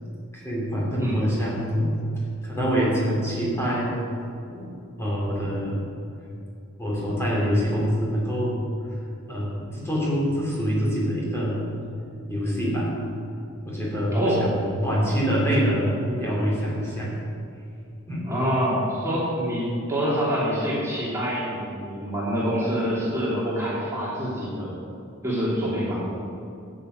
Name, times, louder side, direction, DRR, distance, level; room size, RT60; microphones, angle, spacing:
voice 1, 0.3-1.9 2.4-4.0 4.5-5.9 6.8-8.6 9.3-11.7 12.3-12.9 13.6-17.1 18.1-18.3, equal, 10° left, -6 dB, 3.4 m, -25 dB
voice 2, 14.1-14.4 18.2-24.7 25.2-25.9, equal, 15° right, -8 dB, 2.9 m, -26 dB
13.5 x 8.4 x 6.5 m, 2.6 s
head